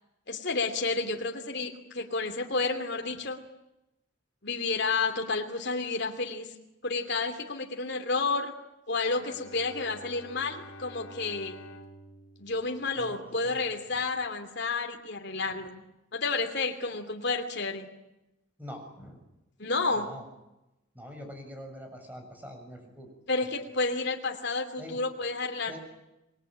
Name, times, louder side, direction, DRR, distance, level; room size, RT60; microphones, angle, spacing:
voice 1, 0.3-3.4 4.4-6.5 6.8-8.5 8.9-11.6 12.4-15.8 16.1-17.9 19.6-20.1 23.3-25.8, left 3 dB, 55° left, 3 dB, 2.9 m, -30 dB
Bowed string instrument, 9.1-13.5, left 1 dB, 80° left, 3.0 m, -49 dB
voice 2, 13.0-13.6 18.6-19.2 19.9-20.2 21.0-23.1 24.8-25.0 25.7-25.8, equal, 10° right, 4 dB, 7.1 m, -44 dB
27.0 x 21.5 x 8.9 m, 0.94 s
head